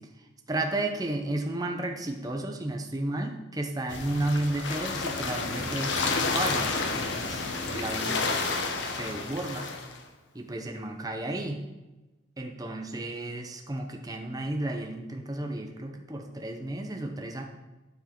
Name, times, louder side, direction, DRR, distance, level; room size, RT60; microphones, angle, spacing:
voice 1, 0.5-8.5 8.9-9.7 10.3-11.6 12.4-17.4, right 1 dB, 20° right, 3 dB, 0.8 m, -33 dB
sound 1, 3.9-10.0, left 3 dB, 70° left, 1.0 m, -30 dB
12.0 x 4.7 x 4.5 m, 1.1 s
head